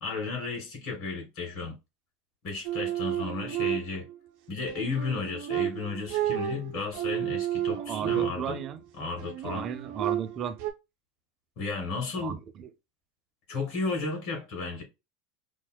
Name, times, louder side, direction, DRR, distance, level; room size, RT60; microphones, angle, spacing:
voice 1, 0.0-1.8 2.4-4.1 4.5-8.6 9.0-9.7 11.6-12.4 13.5-14.8, left 4 dB, 60° left, 2.2 m, -33 dB
sound 1, 2.6-4.2 4.7-8.7 9.2-10.7, right 11 dB, 65° right, 0.8 m, -31 dB
voice 2, 7.8-8.8 9.4-10.6 12.2-12.7, right 8 dB, 40° right, 0.6 m, -35 dB
5.2 x 2.0 x 2.2 m
hypercardioid pair, 95°, 0 cm